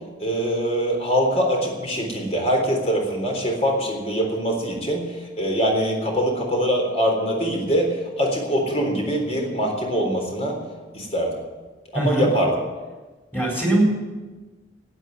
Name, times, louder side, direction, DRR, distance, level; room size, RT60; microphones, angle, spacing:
voice 1, 0.2-10.6 10.9-11.4 11.9-12.6, equal, 35° left, 1 dB, 3.7 m, -23 dB
voice 2, 11.9-12.3 13.3-13.8, right 1 dB, 10° left, -2 dB, 4.9 m, -21 dB
12.0 x 9.7 x 9.2 m, 1.3 s
head